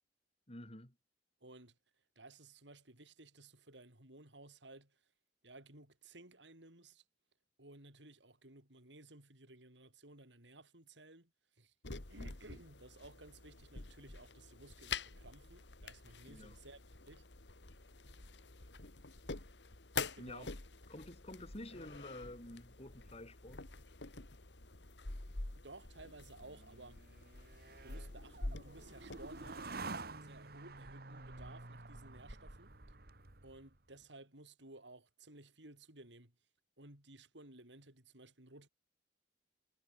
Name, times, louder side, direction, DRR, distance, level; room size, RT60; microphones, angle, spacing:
voice 1, 0.5-0.9 16.2-16.6 20.2-20.5 20.9-23.6, left 1 dB, 35° left, 4.7 m, -50 dB
voice 2, 1.4-1.8 2.2-5.0 5.4-7.0 7.6-11.3 11.6-11.7 12.1-16.8 17.1-17.3 20.1-20.5 25.6-27.0 27.8-32.7 33.4-36.3 36.8-38.7, right 2 dB, 90° right, 6.9 m, -57 dB
sound 1, 11.8-29.7, left 4 dB, 75° left, 2.1 m, -47 dB
sound 2, 26.4-33.8, right 3 dB, 60° right, 2.3 m, -49 dB
head